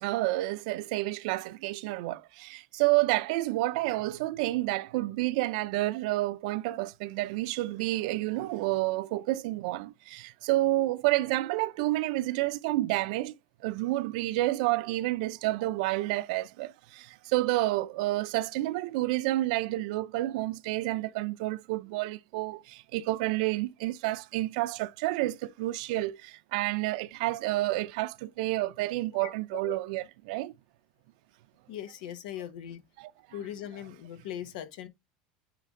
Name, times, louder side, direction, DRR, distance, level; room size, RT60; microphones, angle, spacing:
voice 1, 0.0-13.3 13.6-30.5 33.0-33.1, right 18 dB, 75° right, 0.5 m, -29 dB
voice 2, 29.2-29.8 31.7-32.8 33.3-34.9, left 10 dB, 85° left, 1.1 m, -40 dB
9.1 x 3.4 x 3.7 m
supercardioid pair, 135°, 4 cm